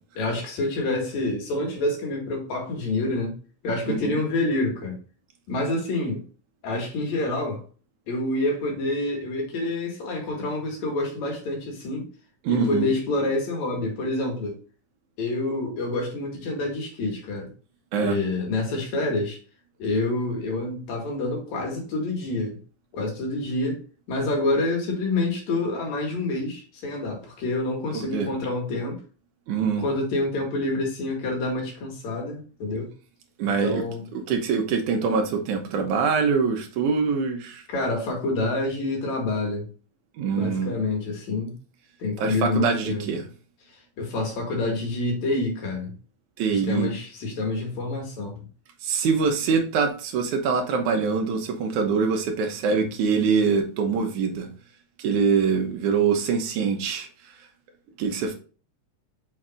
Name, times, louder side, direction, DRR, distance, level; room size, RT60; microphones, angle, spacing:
voice 1, 0.2-3.4 3.6-4.9 5.5-6.2 6.6-7.6 8.1-12.0 12.5-14.6 15.2-17.5 18.0-19.4 19.8-22.6 22.9-23.8 24.1-29.0 29.8-32.9 33.4-34.1 37.7-39.7 40.3-41.5 42.0-43.1 44.0-45.9 46.5-48.4, left 2 dB, 70° left, 3.2 m, -27 dB
voice 2, 3.9-4.2 12.4-12.9 17.9-18.2 27.9-28.3 29.5-29.9 33.4-33.8 34.1-37.6 40.2-40.8 42.2-43.3 46.4-47.0 48.8-54.5 55.0-57.1 58.0-58.3, right 5 dB, 85° right, 2.5 m, -24 dB
6.4 x 5.9 x 2.5 m
omnidirectional pair, 3.4 m